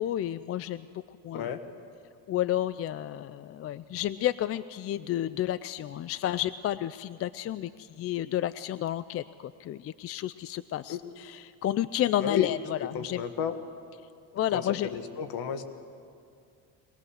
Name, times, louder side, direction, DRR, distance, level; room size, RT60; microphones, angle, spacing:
voice 1, 0.0-1.5 2.3-13.2 14.3-14.9, left 12 dB, 40° left, 16 dB, 0.4 m, -31 dB
voice 2, 12.2-12.5 12.9-13.6 14.5-15.6, left 7 dB, 60° left, 8 dB, 1.7 m, -33 dB
22.5 x 19.0 x 6.5 m, 2.4 s
cardioid pair, 110°, 40 cm